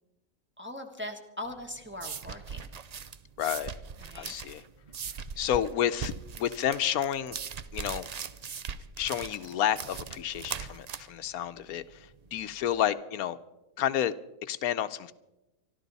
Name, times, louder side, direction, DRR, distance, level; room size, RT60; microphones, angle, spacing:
voice 1, 0.6-2.7 4.0-4.3, left 1 dB, 10° right, 2 dB, 1.2 m, -40 dB
sound 1, 1.5-12.8, right 6 dB, 75° right, 0.3 m, -40 dB
voice 2, 3.4-3.7 4.1-4.6 5.4-7.4 7.7-8.1 9.0-13.4 13.8-14.1 14.4-15.1, left 10 dB, 85° left, 12 dB, 1.2 m, -30 dB
25.5 x 12.5 x 4.1 m, 0.98 s
omnidirectional pair, 1.5 m